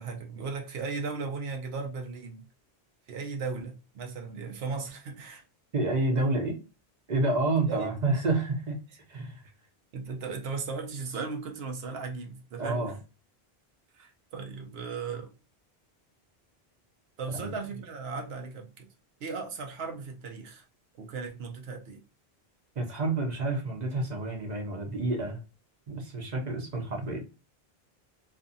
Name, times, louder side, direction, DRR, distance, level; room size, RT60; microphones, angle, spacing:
voice 1, 0.0-2.4 3.1-5.4 7.7-7.9 9.9-12.9 13.9-15.3 17.2-18.9 19.2-20.7 21.0-22.0, right 4 dB, 80° right, 0.8 m, -36 dB
voice 2, 5.7-6.6 7.1-8.8 9.1-9.4 12.6-13.0 17.3-17.5 22.8-25.4 25.9-27.2, right 2 dB, 50° right, 0.7 m, -29 dB
2.5 x 2.5 x 2.5 m
omnidirectional pair, 1.0 m